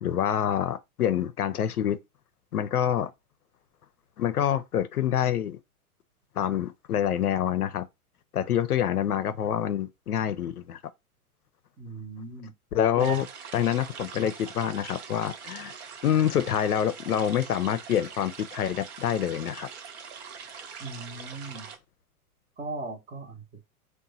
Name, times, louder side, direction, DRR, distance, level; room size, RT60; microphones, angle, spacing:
voice 1, 0.0-2.0 2.5-3.1 4.2-5.6 6.4-7.8 8.3-10.8 12.7-13.3 13.5-15.7 16.0-19.7, left 10 dB, 80° left, 0.6 m, -26 dB
voice 2, 11.8-12.5 13.0-13.2 20.8-21.7 22.6-23.6, right 3 dB, 15° right, 0.6 m, -37 dB
sound 1, 13.0-21.8, right 6 dB, 50° right, 0.7 m, -43 dB
2.9 x 2.2 x 3.8 m
figure-of-eight pair, 100°, 44 cm